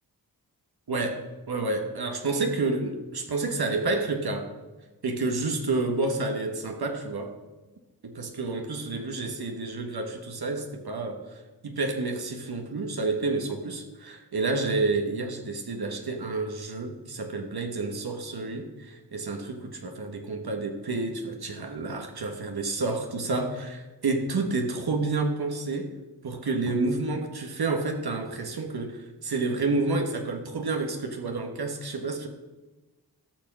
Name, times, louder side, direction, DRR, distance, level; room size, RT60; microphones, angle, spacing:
voice 1, 0.9-1.2 1.5-4.5 5.0-7.4 8.0-25.9 26.2-32.3, right 3 dB, 65° right, 4 dB, 1.4 m, -29 dB
13.5 x 5.7 x 6.2 m, 1.2 s
cardioid pair, 45°, 42 cm